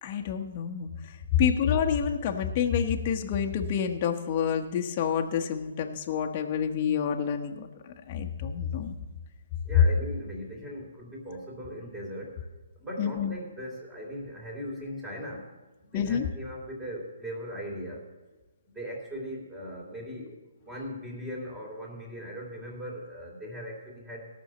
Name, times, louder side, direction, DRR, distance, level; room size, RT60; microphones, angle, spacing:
voice 1, 0.0-0.9 1.4-8.9 9.7-9.8 13.0-13.3 15.9-16.3, left 8 dB, 35° left, 3 dB, 1.1 m, -28 dB
voice 2, 9.7-12.3 12.8-15.4 15.9-18.0 18.7-20.3 20.6-24.3, equal, 10° right, -1 dB, 3.0 m, -39 dB
16.0 x 6.3 x 7.7 m, 1.2 s
hypercardioid pair, 150°, 0 cm